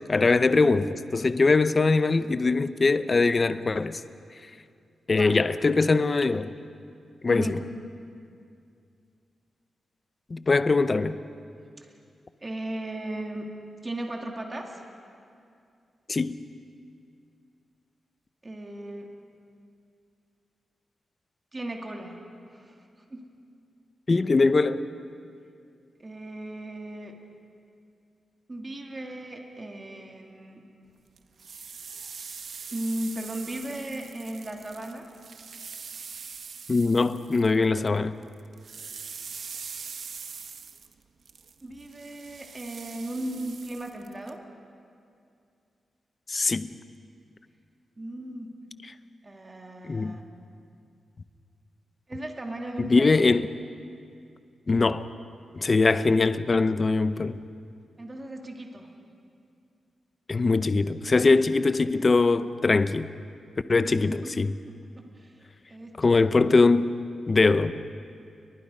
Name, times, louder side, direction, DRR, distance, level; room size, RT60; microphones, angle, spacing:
voice 1, 0.1-4.0 5.1-6.5 7.2-7.6 10.3-11.2 16.1-16.4 24.1-24.8 36.7-38.1 46.3-46.8 49.9-50.2 52.8-53.5 54.7-55.1 55.5-57.4 60.3-63.1 63.7-64.5 66.0-67.7, left 3 dB, 30° left, 0.6 m, -22 dB
voice 2, 7.3-7.6 11.8-11.9 12.4-13.5 13.8-14.8 18.4-19.1 21.5-22.2 22.5-22.8 23.1-23.2 26.0-27.2 28.5-30.7 32.7-35.1 41.6-44.4 48.0-48.5 49.2-50.2 52.1-53.2 58.0-58.9 63.9-64.3 64.7-65.4 65.7-66.3, right 1 dB, 20° right, 2.3 m, -36 dB
sound 1, 31.2-38.0 38.2-44.3, right 6 dB, 50° right, 1.0 m, -43 dB
30.0 x 23.5 x 5.4 m
wide cardioid pair, 165°, 0 cm